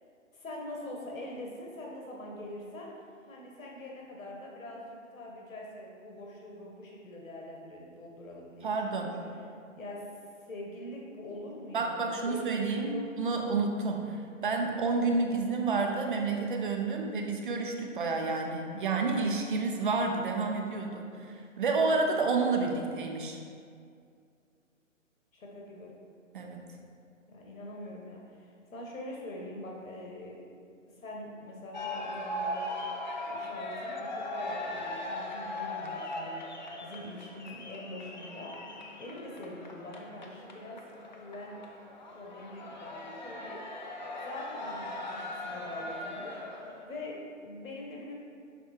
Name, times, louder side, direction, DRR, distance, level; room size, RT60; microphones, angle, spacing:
voice 1, 0.3-9.2 9.7-10.1 10.4-13.1 25.3-25.9 27.3-30.4 30.9-32.7 33.2-40.8 41.2-41.6 42.1-43.6 44.2-46.4 46.8-48.1, left 1 dB, 80° left, -2 dB, 1.4 m, -44 dB
voice 2, 8.6-9.1 11.7-14.2 14.4-23.4 26.3-26.6, right 3 dB, 40° right, 2 dB, 0.7 m, -30 dB
sound 1, 31.7-46.9, left 1 dB, 35° left, 0.5 m, -39 dB
6.0 x 3.7 x 4.4 m, 2.3 s
hypercardioid pair, 155°, 39 cm